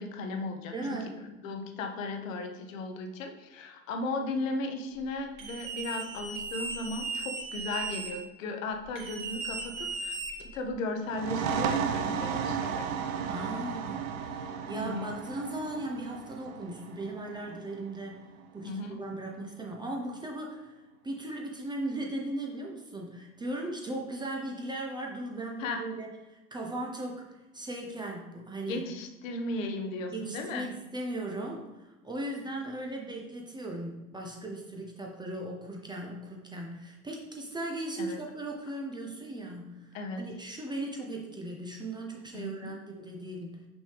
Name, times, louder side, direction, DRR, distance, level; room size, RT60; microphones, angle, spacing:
voice 1, 0.0-1.0 1.4-12.9 14.7-15.1 18.6-19.0 25.6-25.8 28.7-30.7 38.0-38.2 39.9-40.2 42.3-42.8, left 2 dB, 60° left, 5 dB, 0.9 m, -36 dB
voice 2, 0.7-1.3 13.2-18.2 18.5-20.8 21.0-28.8 30.1-43.7, right 1 dB, 10° right, 0 dB, 0.6 m, -38 dB
sound 1, 5.4-8.1 8.9-10.7, right 4 dB, 45° right, 2.1 m, -37 dB
sound 2, 11.1-18.5, right 7 dB, 65° right, 0.6 m, -34 dB
6.0 x 5.3 x 3.3 m, 1.0 s
figure-of-eight pair, 85°, 44 cm